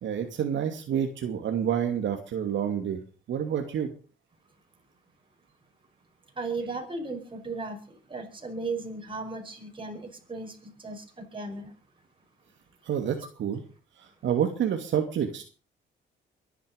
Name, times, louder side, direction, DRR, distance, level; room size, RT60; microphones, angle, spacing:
voice 1, 0.0-3.0 3.3-3.9 12.9-13.6 14.2-15.5, right 8 dB, 70° right, 2.6 m, -28 dB
voice 2, 6.4-7.8 8.1-11.0 11.3-11.7, right 3 dB, 25° right, 5.7 m, -35 dB
23.0 x 10.0 x 5.3 m
cardioid pair, 90°, 20 cm